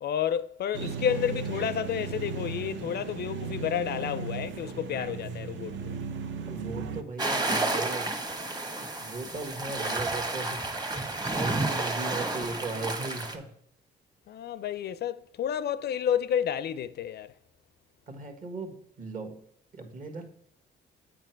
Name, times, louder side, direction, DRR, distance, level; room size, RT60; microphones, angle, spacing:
voice 1, 0.0-5.9 14.3-17.3, left 9 dB, 55° left, 0.4 m, -30 dB
sound 1, 0.7-7.0, right 5 dB, 70° right, 0.8 m, -36 dB
voice 2, 6.5-8.1 8.8-10.7 11.2-13.5 18.1-19.4 19.7-20.3, right 3 dB, 45° right, 1.5 m, -37 dB
sound 2, 7.2-13.3, right 2 dB, 20° right, 1.1 m, -31 dB
7.7 x 4.9 x 4.5 m
cardioid pair, 90°, 20 cm